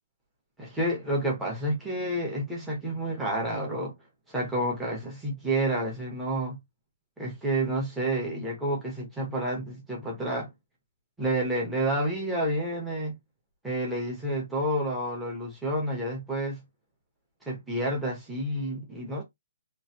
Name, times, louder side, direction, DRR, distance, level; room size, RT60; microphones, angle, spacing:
voice 1, 0.6-3.9 4.3-6.6 7.2-10.5 11.2-13.2 13.6-16.6 17.5-19.2, right 1 dB, 5° right, 1.0 m, -29 dB
3.2 x 2.5 x 2.7 m
hypercardioid pair, 170°, 0 cm